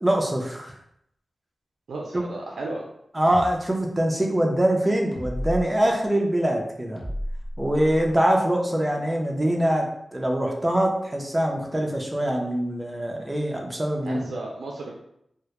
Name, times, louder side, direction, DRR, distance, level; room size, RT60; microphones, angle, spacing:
voice 1, 0.0-0.7 2.1-2.2 3.1-7.0 7.6-14.2, right 1 dB, 20° right, 1 dB, 0.5 m, -24 dB
voice 2, 1.9-2.8 14.0-15.0, right 2 dB, 90° right, -2 dB, 0.3 m, -34 dB
sound 1, 3.3-3.5 5.1-5.6 7.0-8.1, equal, 20° left, 0.6 m, -32 dB
2.1 x 2.0 x 2.9 m, 0.76 s
cardioid pair, 65°, 0 cm